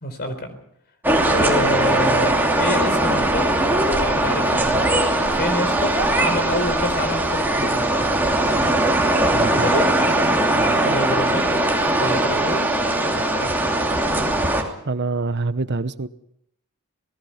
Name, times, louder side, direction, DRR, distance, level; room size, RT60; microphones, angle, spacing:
voice 1, 0.0-0.5 1.2-7.8 9.6-9.9 10.8-11.5 12.0-12.7 13.0-13.6, left 1 dB, 45° left, 9 dB, 4.1 m, -27 dB
sound 1, 1.0-14.6, right 1 dB, 10° right, 2.9 m, -20 dB
voice 2, 9.3-9.7 10.5-10.7 14.9-16.1, right 3 dB, 50° right, 13 dB, 0.9 m, -26 dB
27.0 x 19.0 x 5.8 m, 0.75 s
head